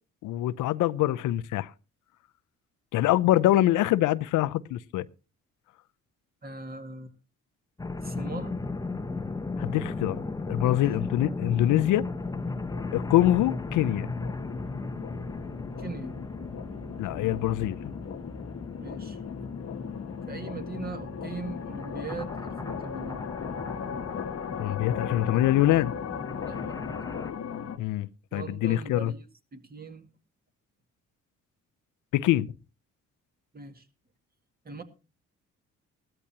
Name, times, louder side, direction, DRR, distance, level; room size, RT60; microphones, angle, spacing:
voice 1, 0.2-1.7 2.9-5.0 9.6-12.1 12.9-14.1 17.0-17.8 24.6-25.9 27.8-29.1 32.1-32.5, left 14 dB, 85° left, 0.7 m, -24 dB
voice 2, 6.4-7.1 8.0-8.6 10.6-10.8 15.8-16.1 18.8-19.2 20.3-23.2 26.4-26.9 28.3-29.3 29.5-30.1 33.5-33.9 34.6-34.8, right 3 dB, 30° right, 2.1 m, -40 dB
sound 1, 7.8-27.3, left 3 dB, 10° left, 0.8 m, -36 dB
sound 2, 12.2-27.8, left 7 dB, 55° left, 1.1 m, -38 dB
17.5 x 13.5 x 2.8 m
cardioid pair, 90°, 30 cm